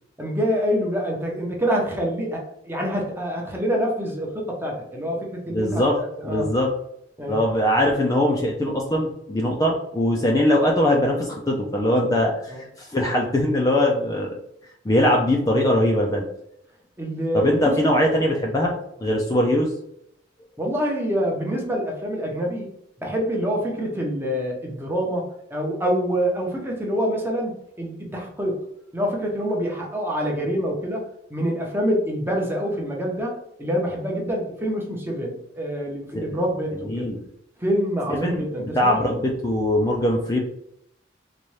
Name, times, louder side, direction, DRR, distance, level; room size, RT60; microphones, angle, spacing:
voice 1, 0.2-5.8 6.2-6.5 7.2-7.4 12.5-12.6 17.0-17.8 20.6-22.7 23.0-28.6 28.9-31.0 31.3-37.1 37.6-39.1, equal, 10° right, -1 dB, 0.7 m, -26 dB
voice 2, 5.5-6.7 7.3-14.4 14.8-16.3 17.3-18.7 19.0-19.7 36.1-36.4 36.8-37.2 38.1-40.4, left 1 dB, 20° left, -1 dB, 0.4 m, -21 dB
4.0 x 2.3 x 3.1 m, 0.75 s
head